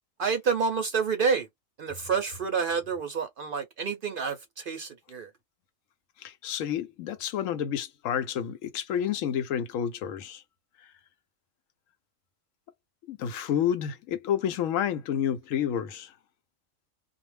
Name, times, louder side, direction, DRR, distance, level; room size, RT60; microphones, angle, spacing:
voice 1, 0.2-1.5 1.8-5.3, right 5 dB, 60° right, 0.6 m, -28 dB
voice 2, 6.2-10.4 13.1-16.1, left 9 dB, 85° left, 1.0 m, -29 dB
2.3 x 2.1 x 3.2 m
omnidirectional pair, 1.3 m